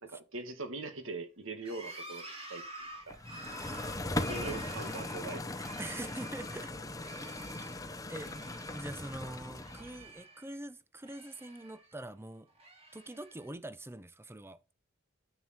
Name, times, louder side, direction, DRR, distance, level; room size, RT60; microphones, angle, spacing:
voice 1, 0.0-2.2 2.5-2.6 3.1-3.2 4.1-5.5, right 3 dB, 65° right, 1.9 m, -41 dB
sound 1, 1.6-6.7 7.0-7.8 8.2-9.1 9.4-10.6 11.0-12.0 12.5-13.5, right 1 dB, 30° right, 2.8 m, -49 dB
sound 2, 3.1-10.1, left 2 dB, 15° left, 0.8 m, -39 dB
voice 2, 5.8-6.7 7.2-7.7 8.1-8.3 8.6-12.5 12.9-14.6, right 1 dB, 10° right, 0.7 m, -44 dB
9.7 x 7.4 x 4.4 m
head